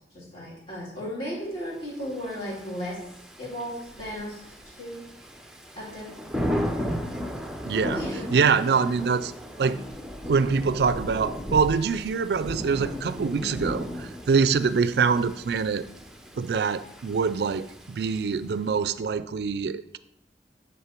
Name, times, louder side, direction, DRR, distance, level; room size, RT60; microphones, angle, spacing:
voice 1, 0.1-3.0 3.4-5.0 5.7-6.1 7.9-8.8, equal, 30° left, -7 dB, 2.9 m, -35 dB
Thunder / Rain, 2.0-18.6, equal, 5° right, 0.6 m, -36 dB
voice 2, 7.7-8.0 8.3-9.3 9.6-9.8 10.3-15.8 16.4-20.0, right 5 dB, 65° right, 14 dB, 0.4 m, -24 dB
10.5 x 3.6 x 4.5 m, 0.78 s
head